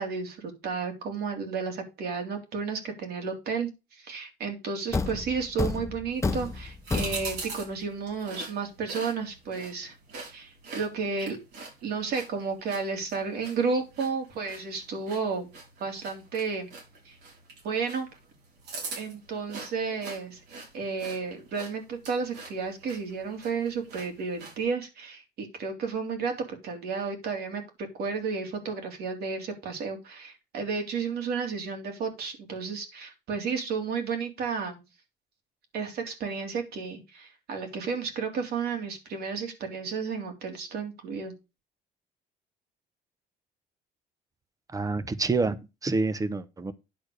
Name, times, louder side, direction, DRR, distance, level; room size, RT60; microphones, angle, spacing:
voice 1, 0.0-9.9 10.3-11.4 11.8-15.5 15.8-16.7 17.0-17.2 17.6-18.1 18.9-20.4 20.7-34.8 35.7-41.3, right 5 dB, 70° right, 3.4 m, -32 dB
Thump thud, 4.9-7.6, left 3 dB, 15° left, 0.9 m, -31 dB
sound 1, 6.1-24.7, right 3 dB, 85° right, 4.6 m, -44 dB
voice 2, 44.7-46.7, right 3 dB, 20° right, 1.0 m, -28 dB
10.0 x 4.6 x 6.5 m
cardioid pair, 110°, 17 cm